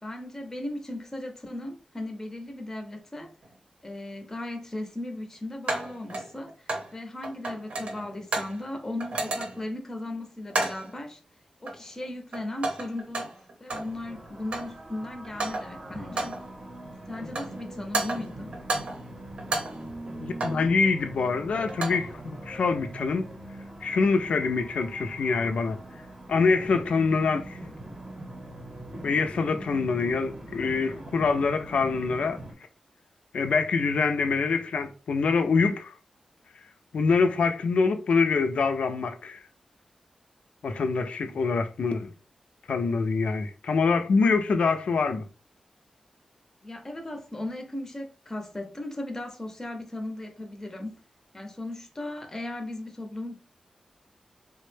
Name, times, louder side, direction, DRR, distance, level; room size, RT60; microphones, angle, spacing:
voice 1, 0.0-3.3 3.8-11.2 11.6-13.3 13.6-16.4 17.1-18.5 46.6-51.0 51.3-53.3, left 1 dB, 20° left, 0.6 m, -37 dB
sound 1, 3.4-3.5 5.7-7.0 7.2-8.6 9.0-9.7 10.5-10.9 11.7-12.0 12.3-14.0 14.3-14.8 15.2-15.8 16.2-16.5 17.1-17.6 17.9-19.1 19.4-20.7 21.5-22.1, right 2 dB, 70° right, 0.8 m, -32 dB
sound 2, 13.7-32.5, right 1 dB, 30° right, 0.7 m, -42 dB
voice 2, 20.2-23.3 23.8-25.8 26.3-27.6 29.0-32.4 33.3-35.9 36.9-39.4 40.6-42.1 42.7-45.3, left 4 dB, 75° left, 0.4 m, -25 dB
3.5 x 2.1 x 3.1 m
wide cardioid pair, 150°, 2 cm